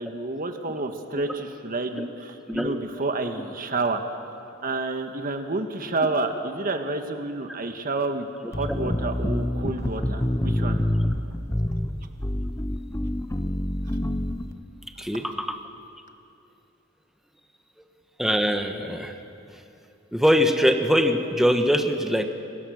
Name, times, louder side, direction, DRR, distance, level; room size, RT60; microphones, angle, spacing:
voice 1, 0.0-4.0 4.6-10.8, right 2 dB, 45° right, 6 dB, 1.5 m, -29 dB
sound 1, 8.5-14.5, left 1 dB, 15° left, 0.8 m, -27 dB
voice 2, 15.0-15.6 18.2-19.1 20.1-22.2, equal, ahead, 5 dB, 1.2 m, -22 dB
26.5 x 21.5 x 6.5 m, 2.7 s
head